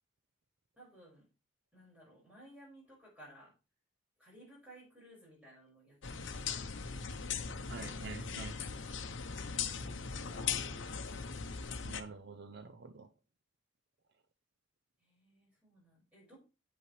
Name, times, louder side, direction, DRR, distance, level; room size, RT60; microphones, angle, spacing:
voice 1, 0.8-1.2 1.7-3.5 4.2-6.6 8.4-8.7 9.2-11.1 11.8-12.0 15.0-16.4, right 1 dB, 5° right, 5.4 m, -58 dB
sound 1, 6.0-12.0, left 6 dB, 70° left, 0.8 m, -39 dB
voice 2, 7.6-8.6 11.9-13.1, right 4 dB, 55° right, 0.5 m, -47 dB
8.4 x 8.2 x 3.2 m
head